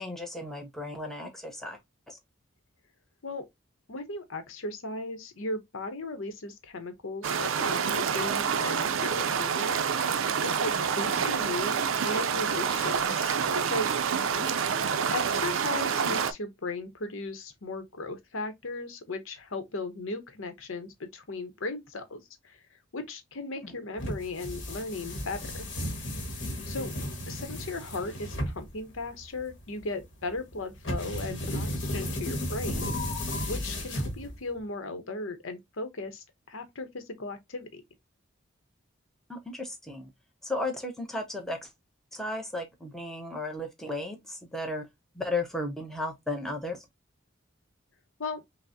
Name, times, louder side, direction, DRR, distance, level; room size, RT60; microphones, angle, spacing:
voice 1, 0.0-1.8 2.1-2.2 11.2-11.3 14.3-15.2 23.6-23.8 39.3-40.1 40.4-41.7 42.1-44.9 45.1-46.8, left 2 dB, ahead, 0.7 m, -35 dB
voice 2, 3.9-10.2 10.4-13.4 13.6-13.9 15.1-22.6 22.9-25.7 26.7-26.9 27.3-32.9 33.5-37.8 48.2-48.4, left 2 dB, 80° left, 0.8 m, -37 dB
sound 1, 7.2-16.3, right 7 dB, 80° right, 0.5 m, -27 dB
sound 2, 24.0-34.6, left 1 dB, 60° left, 1.3 m, -34 dB
5.8 x 2.1 x 2.6 m
head